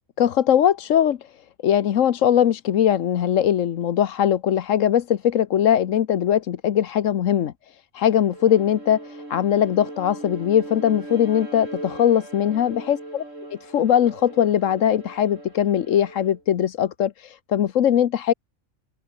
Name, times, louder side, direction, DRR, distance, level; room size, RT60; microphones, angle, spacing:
voice 1, 0.2-1.2 1.6-7.5 7.9-13.2 13.6-18.3, left 10 dB, 75° left, 1.2 m, -20 dB
Bowed string instrument, 8.0-16.4, right 2 dB, 70° right, 6.8 m, -39 dB
open air
omnidirectional pair, 1.3 m